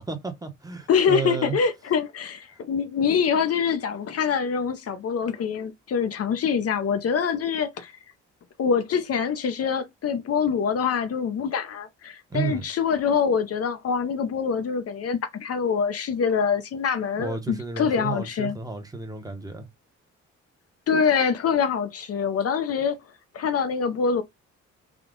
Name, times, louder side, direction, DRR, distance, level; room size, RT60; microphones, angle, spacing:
voice 1, 0.0-1.6 12.3-12.6 17.2-19.6, right 5 dB, 10° right, 0.9 m, -32 dB
voice 2, 0.9-7.9 8.6-18.6 20.9-23.0 23.3-24.2, left 6 dB, 50° left, 0.7 m, -25 dB
3.6 x 2.3 x 3.7 m
cardioid pair, 90°, 30 cm